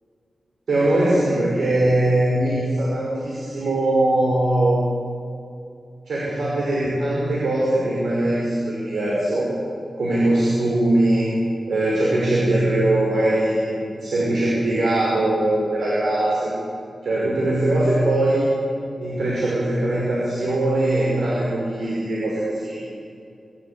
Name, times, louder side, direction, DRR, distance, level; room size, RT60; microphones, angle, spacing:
voice 1, 0.7-4.8 6.1-9.5 10.0-11.3 11.7-16.5 17.0-18.5 19.0-22.8, right 1 dB, 80° right, -5 dB, 5.5 m, -21 dB
25.0 x 13.5 x 8.4 m, 2.5 s
wide cardioid pair, 170°, 0 cm